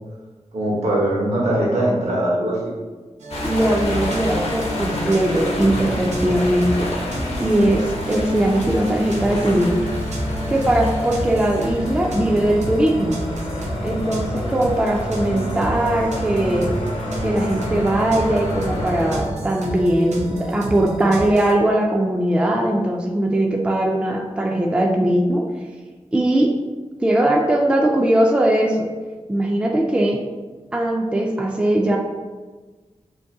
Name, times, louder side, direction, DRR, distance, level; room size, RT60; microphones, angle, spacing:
voice 1, 0.5-2.7, right 1 dB, 75° right, -4 dB, 1.0 m, -21 dB
sound 1, 3.2-21.5, right 1 dB, 90° right, 0.5 m, -30 dB
sound 2, 3.3-19.2, left 1 dB, 65° left, 0.7 m, -28 dB
voice 2, 3.4-6.9 7.4-9.8 10.5-13.1 13.8-16.7 17.2-25.4 26.1-26.5 27.0-28.9 29.3-30.2 30.7-32.0, right 1 dB, 10° right, 1 dB, 0.3 m, -20 dB
2.6 x 2.6 x 3.6 m, 1.3 s
wide cardioid pair, 100°, 11 cm